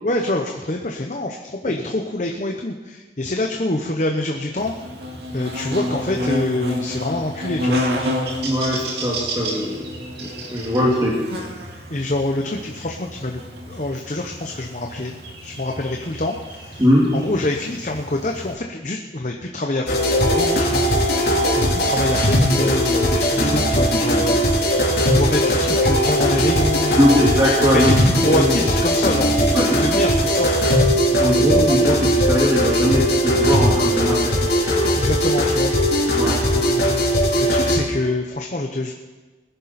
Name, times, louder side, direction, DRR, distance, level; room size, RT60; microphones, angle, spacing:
voice 1, 0.0-4.7 5.3-7.9 11.9-13.4 13.7-15.1 15.4-16.8 17.1-24.4 25.1-27.2 27.7-29.3 29.6-30.5 30.8-31.2 35.0-35.7 36.5-38.9, left 1 dB, 45° left, 2 dB, 0.9 m, -25 dB
Buzz, 4.6-18.5, equal, 70° right, 2.2 m, -30 dB
voice 2, 8.4-9.9 10.5-11.2 16.8-17.1 27.0-28.0 28.3-28.5 29.5-29.8 31.1-34.4 36.1-36.4, equal, 20° right, -6 dB, 2.2 m, -20 dB
sound 1, 19.9-37.8, equal, 60° left, 3.2 m, -19 dB
20.0 x 11.0 x 4.3 m, 1.2 s
head